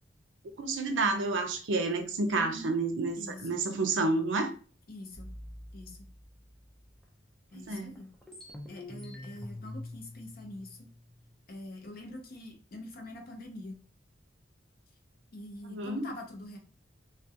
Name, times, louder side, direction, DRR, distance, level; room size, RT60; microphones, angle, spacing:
voice 1, 0.4-4.5 7.7-8.0 15.6-16.0, right 3 dB, 70° right, 6 dB, 0.5 m, -30 dB
voice 2, 2.3-2.7 3.2-3.6 4.9-5.3 5.7-6.1 7.5-8.1 8.7-10.9 11.5-13.8 15.3-16.6, left 1 dB, 50° left, 3 dB, 0.6 m, -44 dB
sound 1, 5.1-7.0 7.5-7.6 7.9-11.4, left 1 dB, 5° left, 0.4 m, -46 dB
2.3 x 2.2 x 2.7 m, 0.38 s
head